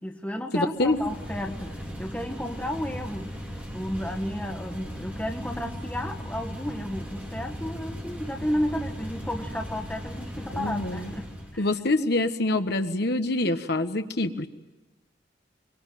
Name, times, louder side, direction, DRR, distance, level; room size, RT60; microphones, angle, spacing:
voice 1, 0.0-11.7, left 1 dB, 5° left, 2 dB, 1.4 m, -33 dB
voice 2, 0.5-1.0 10.5-11.1 11.6-14.5, left 2 dB, 55° left, 7 dB, 1.3 m, -26 dB
sound 1, 0.8-11.6, equal, 10° right, 4.3 m, -37 dB
24.5 x 23.0 x 9.3 m, 1.1 s
head